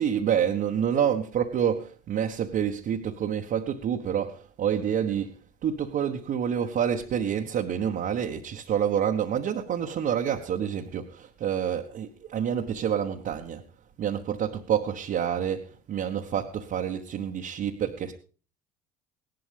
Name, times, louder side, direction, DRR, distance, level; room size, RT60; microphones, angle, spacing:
voice 1, 0.0-5.3 5.6-13.6 14.0-18.1, right 8 dB, 45° right, 1.1 m, -28 dB
17.0 x 11.5 x 3.4 m
hypercardioid pair, 70°, 20 cm